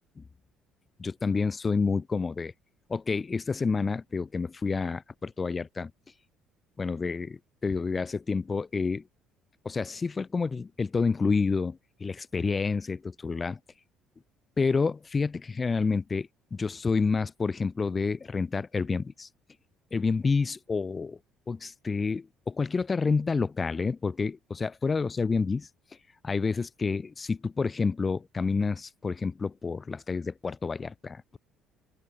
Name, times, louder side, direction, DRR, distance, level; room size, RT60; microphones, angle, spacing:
voice 1, 1.0-2.5 2.9-5.9 6.8-9.0 9.6-13.6 14.6-19.3 19.9-21.2 21.5-25.7 26.2-31.4, left 4 dB, 20° left, 0.4 m, -29 dB
open air
cardioid pair, 145°, 0 cm